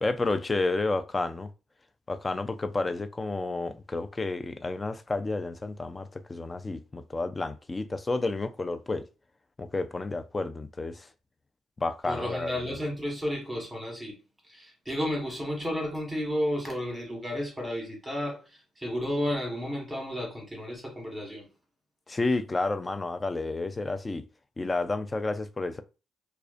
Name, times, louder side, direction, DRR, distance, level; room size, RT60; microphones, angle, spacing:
voice 1, 0.0-1.5 2.1-9.0 9.6-11.1 11.8-12.5 22.1-24.2 24.6-25.8, left 3 dB, 25° left, 0.3 m, -30 dB
voice 2, 12.0-14.2 14.5-18.4 18.8-21.4, equal, 15° right, 1.1 m, -32 dB
2.4 x 2.1 x 2.4 m
cardioid pair, 90°, 0 cm